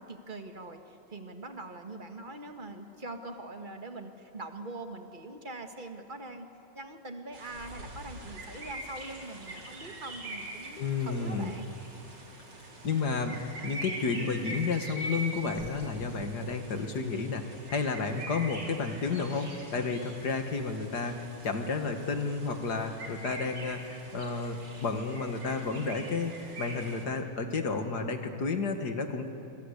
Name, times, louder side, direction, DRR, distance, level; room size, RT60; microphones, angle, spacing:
voice 1, 0.0-6.5 6.7-11.8, right 2 dB, 25° right, 5 dB, 1.6 m, -43 dB
sound 1, 7.3-27.1, right 1 dB, 55° right, 3.9 m, -43 dB
voice 2, 10.8-11.6 12.8-13.3 13.6-29.3, left 4 dB, 50° left, 6 dB, 2.3 m, -31 dB
26.0 x 25.0 x 8.3 m, 2.8 s
omnidirectional pair, 2.3 m